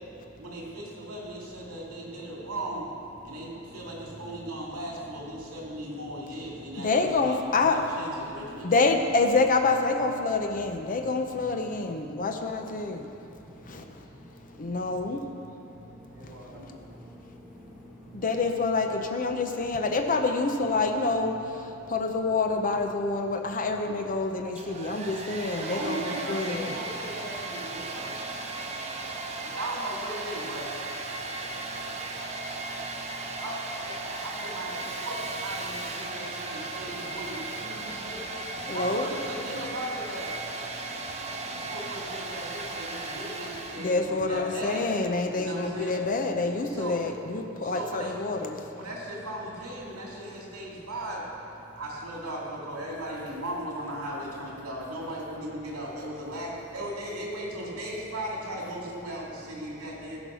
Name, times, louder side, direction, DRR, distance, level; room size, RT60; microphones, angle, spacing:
voice 1, 0.4-2.9 3.2-8.9 16.0-16.8 25.6-28.1 29.3-30.7 33.4-38.2 38.7-40.3 41.5-44.9 45.4-46.0 46.7-47.0 47.6-48.1 48.7-51.2 51.7-60.2, right 1 dB, 75° right, -3 dB, 2.6 m, -37 dB
voice 2, 6.8-7.8 8.6-13.0 13.7-13.8 14.6-15.2 18.1-21.4 21.9-26.7 38.6-39.1 43.8-48.6, left 3 dB, 40° left, 4 dB, 0.6 m, -27 dB
voice 3, 13.5-13.9 14.1-14.9 15.4-16.5 16.9-18.2 21.8-21.9 24.5-25.0 27.9-28.0 28.4-29.5 31.1-33.4 34.1-34.2 36.6-36.8 37.7-38.1 38.6-38.7 40.7-41.7, equal, 5° right, -6 dB, 1.5 m, -50 dB
Domestic sounds home sounds, 24.4-44.0, right 3 dB, 30° right, 0.9 m, -36 dB
15.0 x 5.3 x 6.2 m, 2.8 s
head